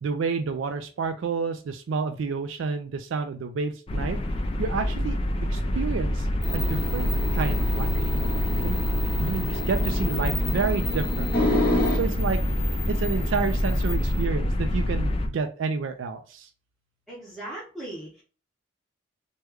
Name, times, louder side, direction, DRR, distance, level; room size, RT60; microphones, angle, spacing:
voice 1, 0.0-4.2 4.6-5.2 5.5-6.3 6.5-7.9 8.6-8.8 9.2-11.6 11.9-12.4 12.9-16.5, right 5 dB, 70° right, 7 dB, 0.4 m, -29 dB
sound 1, 3.9-15.3, left 1 dB, 25° left, 0.3 m, -26 dB
sound 2, 6.4-14.2, left 1 dB, 45° left, 1.0 m, -30 dB
voice 2, 17.1-18.2, right 1 dB, ahead, -7 dB, 0.8 m, -38 dB
3.1 x 2.2 x 3.4 m, 0.37 s
head